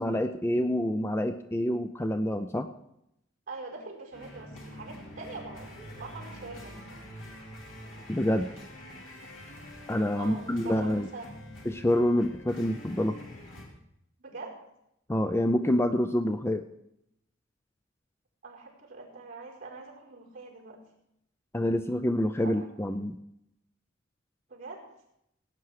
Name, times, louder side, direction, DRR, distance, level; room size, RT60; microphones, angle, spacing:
voice 1, 0.0-2.7 8.1-8.5 9.9-11.1 11.7-13.2 15.1-16.6 21.5-23.2, left 1 dB, 15° left, 8 dB, 0.5 m, -27 dB
voice 2, 3.5-5.7 6.0-7.1 10.2-11.4 14.2-14.5 18.4-20.8 22.4-22.9 24.5-24.9, right 3 dB, 45° right, -1 dB, 4.8 m, -43 dB
sound 1, 4.1-13.7, equal, 80° left, 3.3 m, -46 dB
18.0 x 9.0 x 4.8 m, 0.79 s
head